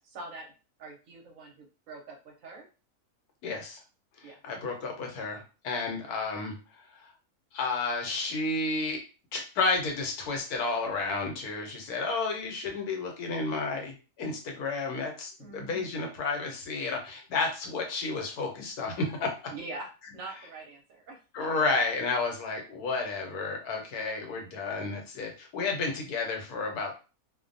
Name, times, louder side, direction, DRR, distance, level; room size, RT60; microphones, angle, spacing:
voice 1, 0.1-0.5 0.8-2.7 4.2-4.4 4.7-4.9 5.8-6.1 15.4-15.8 19.5-19.9 20.1-21.9 24.0-24.4, right 2 dB, 65° right, 1 dB, 1.0 m, -44 dB
voice 2, 3.4-3.8 4.2-6.5 6.9-7.1 7.5-9.0 9.3-19.3 21.3-26.9, left 3 dB, 75° left, 2 dB, 1.2 m, -31 dB
2.5 x 2.2 x 2.5 m, 0.33 s
omnidirectional pair, 1.7 m